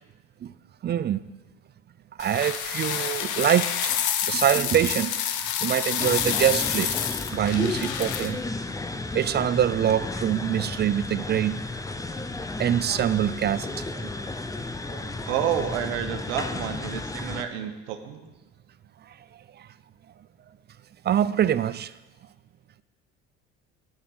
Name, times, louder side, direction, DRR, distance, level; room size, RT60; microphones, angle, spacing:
voice 1, 0.8-1.2 2.2-3.9 4.3-5.2 5.6-7.0 7.3-8.4 9.1-11.6 12.6-14.1 14.9-15.0 21.0-21.9, right 10 dB, 30° right, 0.4 m, -24 dB
sound 1, 2.2-8.3, left 9 dB, 60° left, 1.0 m, -28 dB
sound 2, 6.0-17.4, left 2 dB, 10° left, 0.7 m, -33 dB
voice 2, 15.3-18.3, right 9 dB, 85° right, 1.1 m, -29 dB
9.1 x 6.3 x 7.9 m
supercardioid pair, 80°, 34 cm